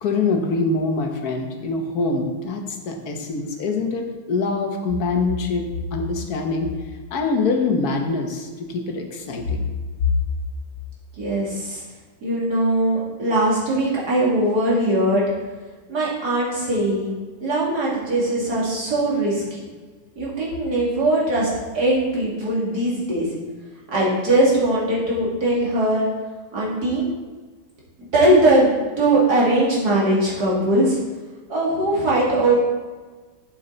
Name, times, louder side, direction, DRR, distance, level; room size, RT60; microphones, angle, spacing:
voice 1, 0.0-6.7 7.1-9.7 10.0-10.1, left 3 dB, 65° left, 3 dB, 1.5 m, -24 dB
voice 2, 11.2-11.8 12.2-15.2 15.9-19.6 20.2-23.3 23.9-26.1 26.5-27.1 28.0-31.0 31.5-32.5, right 1 dB, 70° right, -6 dB, 3.0 m, -20 dB
7.8 x 7.4 x 3.9 m, 1.3 s
omnidirectional pair, 1.8 m